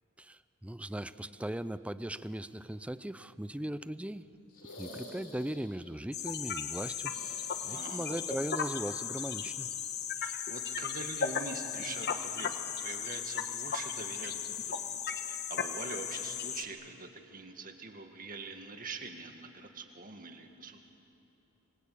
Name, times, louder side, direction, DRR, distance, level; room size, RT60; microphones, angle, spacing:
voice 1, 0.2-4.3 4.8-7.2 7.6-9.7, right 1 dB, 5° right, 14 dB, 0.5 m, -38 dB
sound 1, 4.5-5.9 7.0-8.2 8.5-8.6 10.2-10.3, left 1 dB, 75° left, 6.0 m, -49 dB
sound 2, 6.1-16.6, left 7 dB, 50° left, 1.3 m, -36 dB
voice 2, 7.7-8.2 10.2-14.8 15.2-20.8, right 3 dB, 40° right, 5 dB, 2.0 m, -44 dB
26.5 x 22.5 x 8.6 m, 2.9 s
head